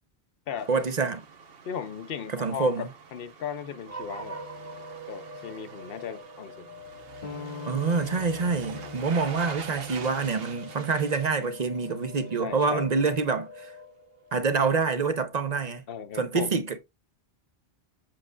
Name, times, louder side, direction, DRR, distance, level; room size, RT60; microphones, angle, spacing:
sound 1, 0.6-12.5 12.8-12.9, right 6 dB, 70° right, 1.1 m, -45 dB
voice 1, 0.7-1.2 2.3-2.9 7.6-13.7 14.3-15.8 16.1-16.8, right 4 dB, 45° right, 0.8 m, -26 dB
voice 2, 1.6-4.4 5.1-6.7 8.5-8.9 12.4-12.9 15.9-16.5, left 7 dB, 65° left, 0.9 m, -37 dB
sound 2, 3.8-14.4, equal, 15° right, 0.9 m, -45 dB
sound 3, 7.2-12.4, left 6 dB, 50° left, 0.6 m, -44 dB
7.5 x 6.5 x 2.2 m
omnidirectional pair, 1.0 m